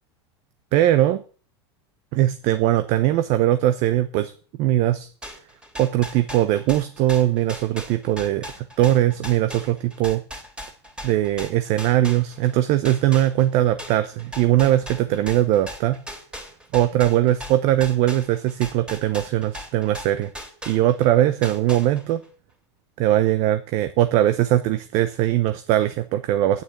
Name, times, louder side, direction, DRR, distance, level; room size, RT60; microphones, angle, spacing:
voice 1, 0.7-1.2 2.1-4.3 4.6-5.1 5.8-10.2 11.0-16.0 16.7-20.3 20.7-22.2 23.0-26.6, right 13 dB, 50° right, 10 dB, 0.9 m, -20 dB
sound 1, 5.2-12.5 12.8-21.1 21.4-22.2, equal, 5° right, 3.2 m, -38 dB
9.4 x 8.5 x 7.9 m, 0.42 s
supercardioid pair, 125°, 14 cm